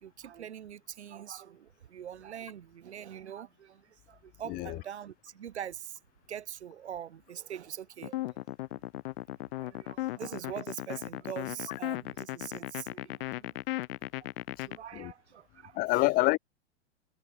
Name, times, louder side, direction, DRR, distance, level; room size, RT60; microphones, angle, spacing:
voice 1, 0.0-3.8 4.1-6.0 6.3-8.4 9.6-13.5 14.6-16.1, right 9 dB, 75° right, 1.3 m, -43 dB
voice 2, 4.5-4.8 14.9-15.1 15.7-16.4, left 21 dB, 25° left, 0.5 m, -26 dB
sound 1, 8.0-14.8, left 17 dB, 55° left, 1.4 m, -36 dB
hypercardioid pair, 105°, 34 cm